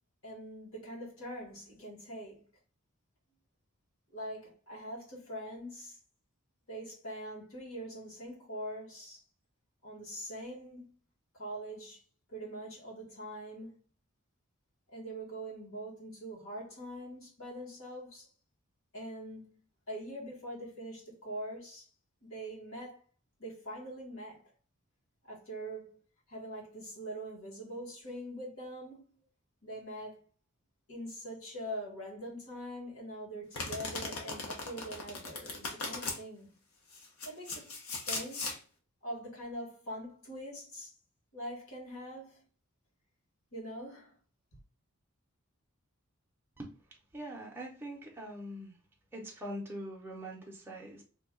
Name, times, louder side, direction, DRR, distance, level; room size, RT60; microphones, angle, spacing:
voice 1, 0.2-2.5 4.1-6.0 6.7-9.2 9.8-10.8 11.3-12.0 12.3-13.8 14.9-18.3 18.9-21.9 22.2-23.0 23.4-24.4 25.2-26.0 26.3-29.1 29.6-30.2 30.9-36.6 37.2-37.7 38.1-38.5 39.0-40.9 41.3-42.4 43.5-44.2, right 1 dB, 65° left, 1.5 m, -43 dB
Domestic sounds home sounds, 33.5-36.2 36.9-38.6, left 3 dB, 80° left, 0.8 m, -38 dB
voice 2, 47.1-48.8 49.1-51.0, right 1 dB, 10° right, 0.5 m, -43 dB
2.7 x 2.2 x 3.6 m
head